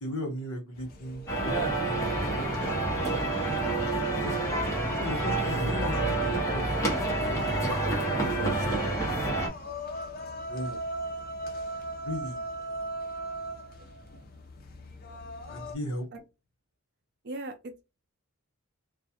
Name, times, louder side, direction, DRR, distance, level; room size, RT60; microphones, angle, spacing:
voice 1, 0.0-3.3 4.2-4.4 5.0-7.1 8.1-9.3 10.3-10.8 12.0-12.4 15.5-16.1, equal, 75° left, 1.0 m, -38 dB
sound 1, 0.7-15.7, right 1 dB, 40° left, 0.5 m, -40 dB
sound 2, 1.3-9.5, right 2 dB, 15° left, 0.8 m, -28 dB
voice 2, 8.3-8.9 13.8-13.9 16.1-16.2 17.2-17.8, right 2 dB, 50° right, 0.4 m, -40 dB
2.3 x 2.1 x 2.8 m
head